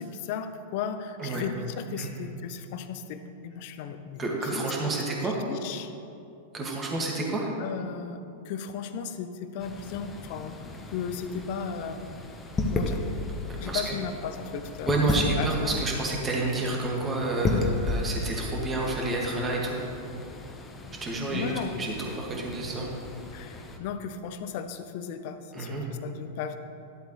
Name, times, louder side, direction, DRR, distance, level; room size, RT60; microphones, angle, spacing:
voice 1, 0.0-4.2 4.5-5.9 7.6-10.6 10.9-12.1 12.7-13.0 13.6-15.8 21.3-21.8 23.3-26.6, left 7 dB, 55° left, 9 dB, 0.6 m, -36 dB
voice 2, 4.2-5.4 6.5-7.5 13.5-13.9 14.8-19.8 21.0-21.5 21.8-22.9 25.5-25.8, right 2 dB, 20° right, -2 dB, 2.0 m, -29 dB
sound 1, 9.6-23.8, left 2 dB, 20° left, 1.0 m, -34 dB
12.0 x 7.9 x 3.2 m, 2.6 s
hypercardioid pair, 100°, 0 cm